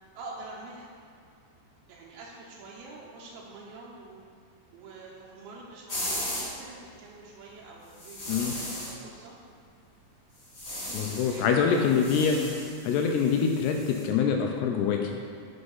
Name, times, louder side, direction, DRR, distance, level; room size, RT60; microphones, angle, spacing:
voice 1, 0.2-0.9 1.9-4.2 4.7-9.3 10.8-11.9 12.3-12.5, right 3 dB, 80° right, -4 dB, 3.4 m, -46 dB
sound 1, 5.9-6.5 8.0-8.9 10.4-11.4 11.7-14.0, left 1 dB, 25° left, 1.4 m, -37 dB
voice 2, 10.9-12.4 12.8-15.1, left 6 dB, 85° left, 2 dB, 2.4 m, -25 dB
8.0 x 6.6 x 5.5 m, 2.3 s
omnidirectional pair, 5.3 m